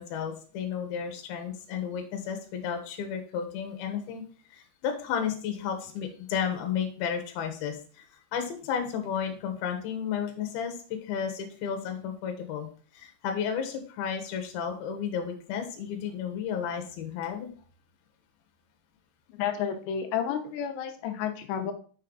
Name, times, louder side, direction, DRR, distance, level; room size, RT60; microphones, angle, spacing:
voice 1, 0.0-4.2 4.5-8.0 8.3-12.7 12.9-17.5, left 7 dB, 70° left, 4 dB, 2.9 m, -33 dB
voice 2, 19.3-21.7, left 8 dB, 85° left, 6 dB, 3.1 m, -31 dB
6.6 x 6.5 x 3.9 m, 0.42 s
omnidirectional pair, 5.1 m